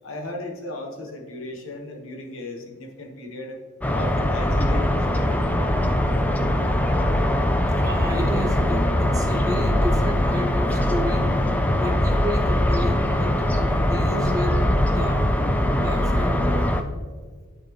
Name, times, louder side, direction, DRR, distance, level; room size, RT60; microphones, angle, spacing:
voice 1, 0.0-3.6 3.9-5.4, left 1 dB, 60° left, 3 dB, 1.2 m, -36 dB
sound 1, 3.8-16.8, left 1 dB, 5° left, 0.4 m, -21 dB
voice 2, 7.8-11.3 11.7-15.3 15.7-16.7, equal, 15° right, 1 dB, 1.0 m, -31 dB
11.5 x 4.3 x 3.0 m, 1.5 s
head